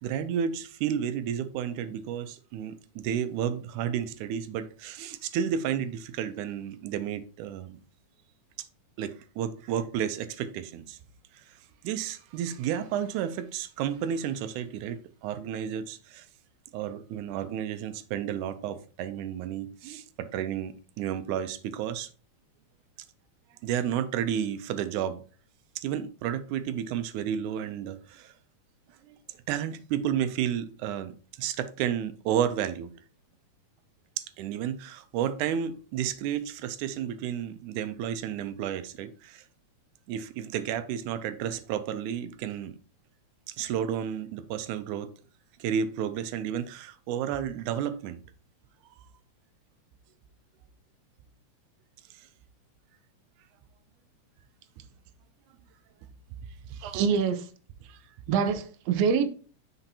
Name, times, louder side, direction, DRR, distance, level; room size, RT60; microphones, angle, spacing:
voice 1, 0.0-7.8 8.6-8.7 9.0-11.0 11.3-11.6 11.8-16.3 16.7-22.1 23.6-25.2 25.8-28.3 29.0-29.2 29.5-32.9 34.4-39.4 40.1-42.8 43.5-45.1 45.6-48.2 49.0-49.1 52.1-52.3 56.7-57.2 57.9-58.0, right 9 dB, 90° right, 2.1 m, -32 dB
voice 2, 56.8-57.4 58.3-59.4, right 6 dB, 70° right, 1.7 m, -25 dB
9.9 x 4.4 x 2.8 m
omnidirectional pair, 3.4 m